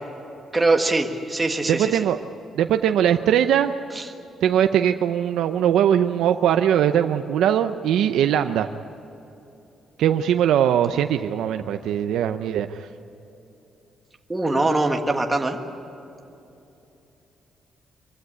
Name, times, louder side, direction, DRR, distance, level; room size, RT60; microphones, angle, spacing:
voice 1, 0.5-2.0 3.9-4.1 14.3-15.6, right 2 dB, 15° right, 3 dB, 1.5 m, -22 dB
voice 2, 1.7-2.2 2.5-3.7 4.4-8.7 10.0-12.9, right 10 dB, 90° right, 8 dB, 0.6 m, -20 dB
24.0 x 16.0 x 9.7 m, 2.9 s
cardioid pair, 150°, 0 cm